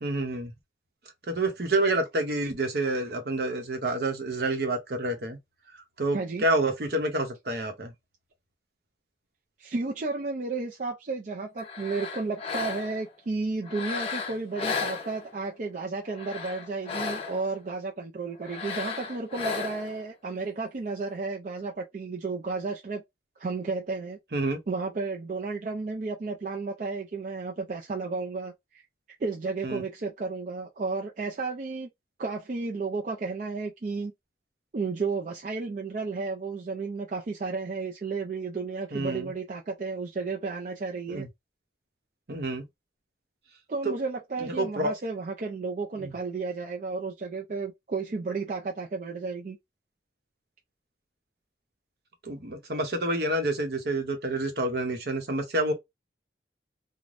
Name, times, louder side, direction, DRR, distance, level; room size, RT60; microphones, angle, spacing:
voice 1, 0.0-0.5 1.3-5.4 5.7-7.9 24.3-24.6 29.6-29.8 38.9-39.3 41.1-41.3 42.3-42.6 43.8-43.9 44.4-44.9 46.0-46.1 52.2-55.7, right 2 dB, 65° right, 0.8 m, -28 dB
voice 2, 6.1-6.4 9.6-23.0 23.4-24.2 24.7-28.8 29.2-31.9 32.2-34.1 34.7-41.3 43.7-49.6, right 4 dB, 45° right, 0.4 m, -33 dB
sound 1, 11.6-13.1 13.6-15.5 16.0-17.5 18.4-20.0, left 5 dB, 35° left, 0.6 m, -34 dB
3.2 x 2.1 x 2.5 m
head